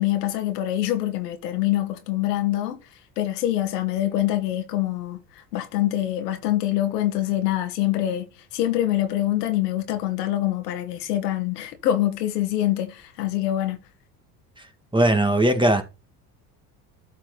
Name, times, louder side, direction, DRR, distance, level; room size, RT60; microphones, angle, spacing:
voice 1, 0.0-2.8 3.2-5.2 5.5-8.3 8.5-13.8, left 13 dB, 90° left, 1.7 m, -25 dB
voice 2, 14.9-15.8, right 1 dB, 10° right, 2.0 m, -19 dB
12.5 x 4.7 x 4.0 m
hypercardioid pair, 70°, 47 cm